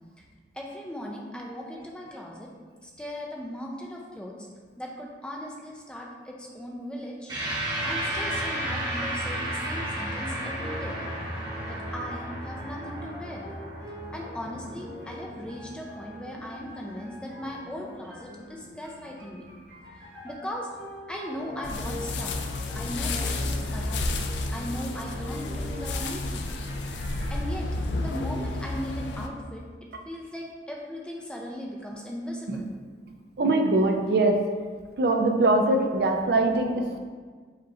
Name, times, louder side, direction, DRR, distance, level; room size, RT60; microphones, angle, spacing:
voice 1, 0.5-2.5 2.8-4.5 4.8-7.3 7.8-11.0 11.7-13.5 14.1-19.5 20.2-20.7 21.1-22.4 22.7-24.1 24.5-26.5 27.3-29.6 30.1-32.7, equal, 5° left, -2 dB, 0.4 m, -38 dB
sound 1, 7.3-16.0, right 1 dB, 25° right, 1.0 m, -33 dB
sound 2, 10.4-27.4, left 1 dB, 80° right, 1.1 m, -44 dB
sound 3, 21.6-29.3, left 2 dB, 80° left, 0.4 m, -31 dB
voice 2, 33.4-34.4 35.0-37.0, right 2 dB, 60° right, 3 dB, 0.4 m, -22 dB
5.0 x 2.5 x 4.1 m, 1.5 s
head